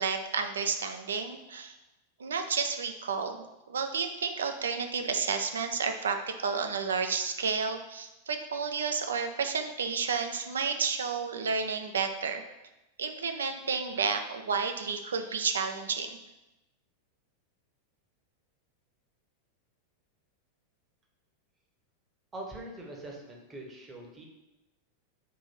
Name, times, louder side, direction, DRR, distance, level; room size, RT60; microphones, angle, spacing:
voice 1, 0.0-1.7 2.2-12.4 13.0-16.2, right 5 dB, 65° right, 7 dB, 0.3 m, -31 dB
voice 2, 22.3-24.2, right 1 dB, 15° right, 0 dB, 0.8 m, -43 dB
3.6 x 2.5 x 4.2 m, 0.97 s
figure-of-eight pair, 90°, 0 cm